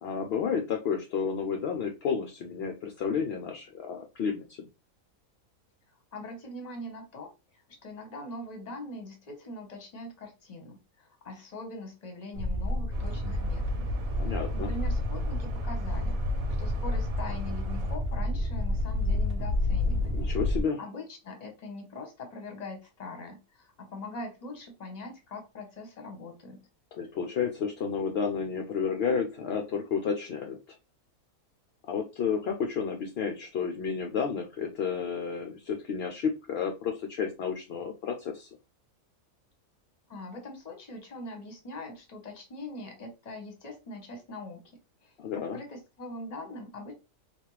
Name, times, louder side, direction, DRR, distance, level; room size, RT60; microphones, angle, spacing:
voice 1, 0.0-4.7 14.2-14.7 20.0-20.8 26.9-30.6 31.9-38.5 45.2-45.6, left 6 dB, 65° left, 0.6 m, -31 dB
voice 2, 6.1-13.9 14.2-20.2 20.8-26.6 40.1-46.9, left 2 dB, 35° left, 0.8 m, -42 dB
sound 1, 12.3-20.6, left 1 dB, 55° right, 0.8 m, -29 dB
sound 2, 12.9-18.0, right 3 dB, 90° right, 1.1 m, -42 dB
3.4 x 2.3 x 3.0 m
omnidirectional pair, 1.5 m